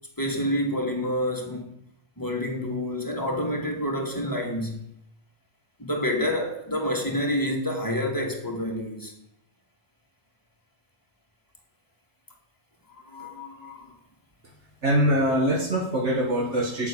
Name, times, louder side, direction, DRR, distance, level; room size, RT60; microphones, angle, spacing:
voice 1, 0.2-1.7 2.2-4.8 5.8-9.1 13.0-13.9, left 1 dB, 15° left, 2.4 m, -28 dB
voice 2, 14.8-16.9, equal, 65° right, 1.9 m, -23 dB
9.4 x 9.0 x 8.5 m
omnidirectional pair, 1.3 m